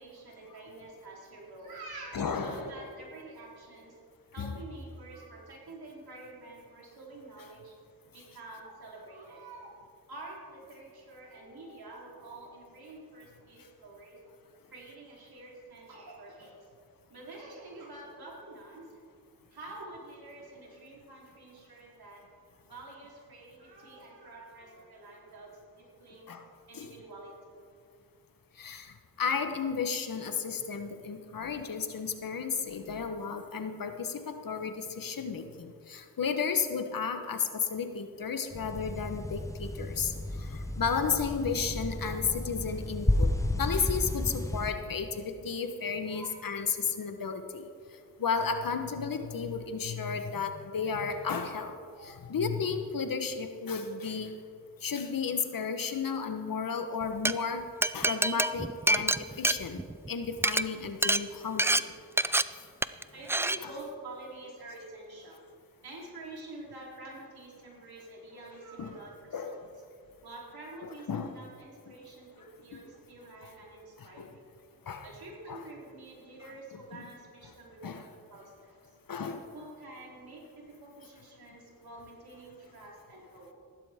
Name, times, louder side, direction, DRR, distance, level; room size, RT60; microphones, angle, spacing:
voice 1, 0.0-4.0 4.3-7.8 8.1-9.7 10.1-14.2 14.7-16.6 17.1-19.0 19.5-22.2 22.7-26.3 26.7-27.3 31.9-32.0 41.6-42.5 45.8-46.4 50.5-50.6 51.9-52.2 55.3-56.2 63.1-65.5 65.8-69.6 70.2-74.4 75.0-78.8 79.5-83.5, right 2 dB, 70° right, -3 dB, 3.6 m, -48 dB
voice 2, 2.1-2.6 4.4-4.5 26.3-26.4 26.7-26.9 28.6-40.1 40.4-43.3 43.6-47.7 48.2-51.7 52.0-54.3 54.8-57.6 57.9-59.8 60.1-61.8 68.8-69.0 69.3-69.5 71.1-71.4 74.2-74.3 74.9-75.1 75.5-75.6 76.9-77.0 77.8-78.0 79.1-79.5, left 5 dB, 60° left, 7 dB, 1.2 m, -33 dB
sound 1, 38.5-44.7, left 1 dB, 10° left, 0.8 m, -32 dB
Glass, 57.0-57.3 57.8-60.1 60.4-60.6 61.0-61.2 61.6-61.8 62.2-62.4 62.8-63.0 63.3-63.6, right 2 dB, 5° right, 0.3 m, -26 dB
15.5 x 12.0 x 3.6 m, 2.3 s
cardioid pair, 60°, 38 cm